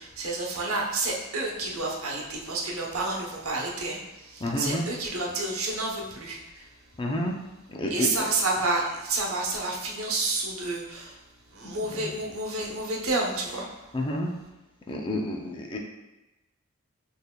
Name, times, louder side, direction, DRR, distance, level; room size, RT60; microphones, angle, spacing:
voice 1, 0.0-6.7 7.9-11.2 11.5-13.9, right 2 dB, 75° right, -1 dB, 0.9 m, -30 dB
voice 2, 4.4-4.8 7.0-7.3 7.7-8.1 11.6-12.0 13.9-14.3 14.9-15.8, left 1 dB, 25° left, 1 dB, 0.5 m, -30 dB
6.5 x 3.4 x 2.2 m, 1.0 s
head